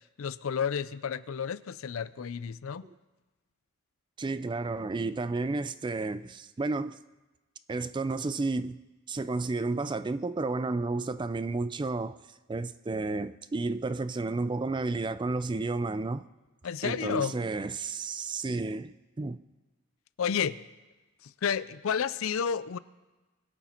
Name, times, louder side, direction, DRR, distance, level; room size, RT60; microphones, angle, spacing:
voice 1, 0.2-2.8 16.6-17.4 20.2-20.6 21.2-22.8, left 7 dB, 75° left, 0.4 m, -31 dB
voice 2, 4.2-7.0 7.7-8.8 9.1-12.1 12.5-16.3 16.8-19.4, right 3 dB, 20° right, 0.3 m, -32 dB
21.0 x 8.3 x 4.4 m
head